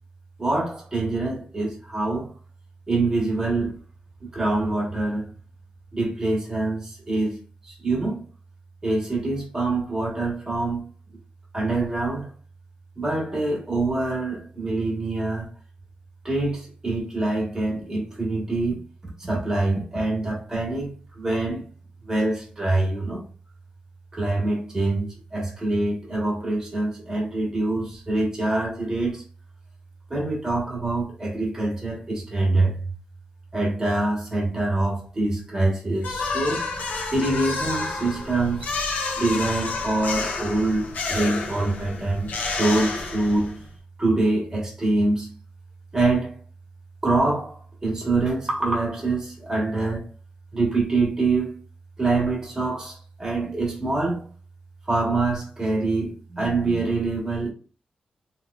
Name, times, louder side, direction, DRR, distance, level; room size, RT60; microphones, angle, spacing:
voice 1, 0.4-2.3 2.9-3.8 4.2-5.3 5.9-8.2 8.8-10.9 11.5-12.3 12.9-15.5 16.2-18.8 19.2-21.7 22.0-23.2 24.1-29.2 30.1-32.8 33.5-36.6 37.1-38.7 39.2-42.3 42.6-43.6 44.0-45.3 45.9-46.3 47.0-50.0 50.5-51.6 52.0-54.3 54.9-57.5, right 2 dB, 20° right, 1.5 m, -25 dB
sound 1, 36.0-43.7, left 3 dB, 85° left, 0.7 m, -30 dB
3.4 x 3.1 x 2.5 m
wide cardioid pair, 125°, 3 cm